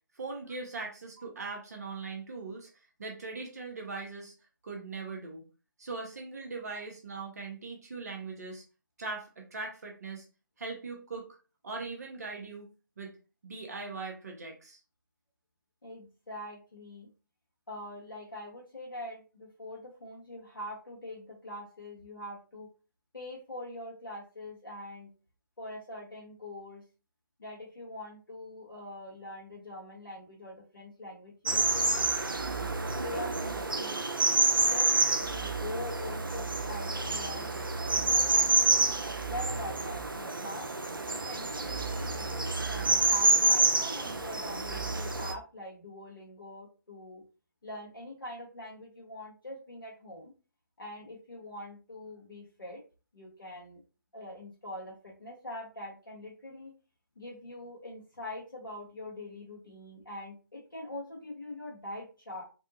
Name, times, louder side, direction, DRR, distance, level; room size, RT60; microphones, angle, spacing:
voice 1, 0.2-2.7 3.0-4.3 4.6-5.4 5.8-8.6 9.0-10.2 10.6-11.3 11.6-12.7 13.0-13.1 13.4-14.8, right 4 dB, 50° right, 1 dB, 0.9 m, -40 dB
voice 2, 15.8-17.1 17.7-22.7 23.1-25.1 25.6-26.8 27.4-32.1 32.5-32.7 33.0-34.1 34.7-34.9 35.2-37.5 37.9-38.9 39.3-40.7 41.1-47.2 47.6-50.3 50.8-52.8 53.1-53.8 54.1-56.7 57.1-62.4, left 1 dB, 75° left, -5 dB, 1.4 m, -43 dB
sound 1, 31.5-45.3, right 3 dB, 75° right, 0.5 m, -28 dB
3.5 x 2.3 x 2.7 m, 0.33 s
figure-of-eight pair, 140°, 11 cm